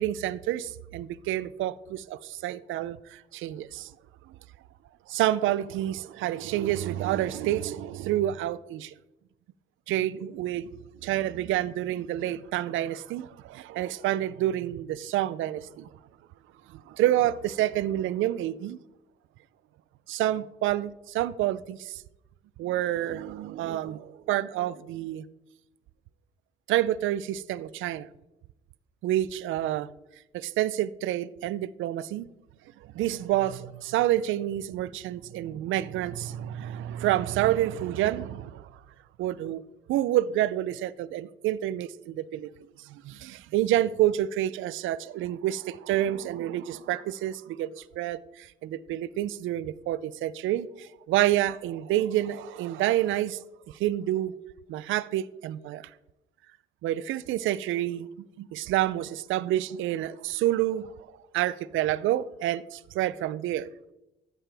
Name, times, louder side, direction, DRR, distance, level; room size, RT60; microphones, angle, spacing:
voice 1, 0.0-3.9 4.3-4.4 5.1-8.9 9.9-10.7 11.0-15.9 16.7-18.8 20.1-22.0 22.6-25.2 26.7-28.1 29.0-29.9 30.3-32.3 32.8-38.8 39.2-39.6 39.9-42.5 42.8-54.3 54.7-55.9 56.8-61.1 61.3-63.7, right 13 dB, 85° right, 0.5 m, -28 dB
13.0 x 7.8 x 3.4 m
cardioid pair, 90°, 20 cm